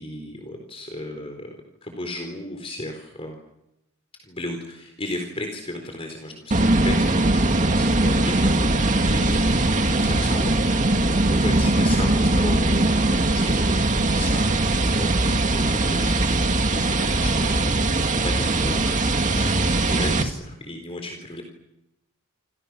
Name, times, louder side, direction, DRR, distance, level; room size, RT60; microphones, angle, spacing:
voice 1, 0.0-3.4 4.2-8.7 9.0-17.8 18.2-21.4, left 1 dB, 25° left, 4 dB, 4.1 m, -35 dB
sound 1, 6.5-20.2, right 2 dB, 35° right, 2.2 m, -21 dB
29.0 x 28.5 x 6.3 m, 0.88 s
head